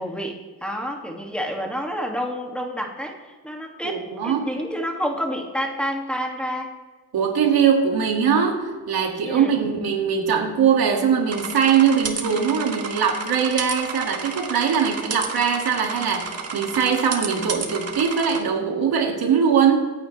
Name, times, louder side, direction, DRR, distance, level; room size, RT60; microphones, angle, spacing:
voice 1, 0.0-6.7 9.3-9.5, equal, 5° left, 1 dB, 2.3 m, -29 dB
voice 2, 3.8-4.5 7.1-19.8, right 7 dB, 70° right, 1 dB, 2.4 m, -21 dB
sound 1, 11.3-18.4, right 5 dB, 40° right, 1.9 m, -32 dB
26.5 x 9.1 x 3.4 m, 1.3 s
cardioid pair, 90°, 38 cm